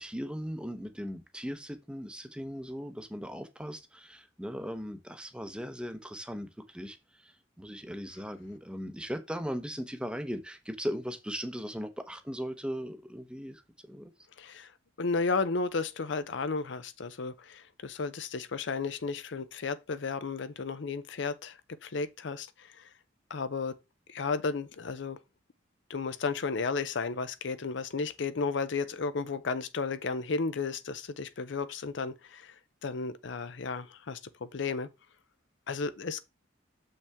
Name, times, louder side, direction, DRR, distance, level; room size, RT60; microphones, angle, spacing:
voice 1, 0.0-14.1, equal, 5° right, 0.7 m, -38 dB
voice 2, 14.4-14.7 15.0-22.9 23.3-23.7 24.1-25.2 25.9-32.6 32.8-34.9 35.7-36.2, left 4 dB, 65° left, 0.6 m, -33 dB
7.0 x 5.4 x 3.5 m
head